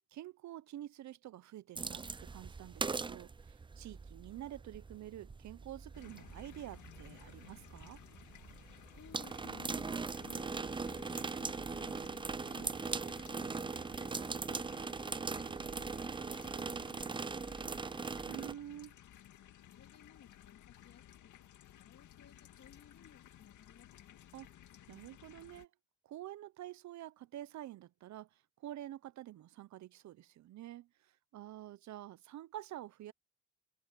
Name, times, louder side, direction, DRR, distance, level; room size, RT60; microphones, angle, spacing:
voice 1, 0.0-8.0 18.3-18.9 24.3-24.5 24.9-25.7 26.1-28.3 28.6-30.9 31.3-33.1, right 13 dB, 65° right, 0.7 m, -48 dB
sound 1, 1.8-18.5, right 4 dB, 15° right, 0.5 m, -41 dB
sound 2, 5.9-25.6, left 11 dB, 75° left, 2.3 m, -58 dB
voice 2, 9.0-9.9 10.2-15.2 15.7-18.1 19.6-21.3 21.7-24.2, left 8 dB, 60° left, 2.7 m, -59 dB
cardioid pair, 90°, 30 cm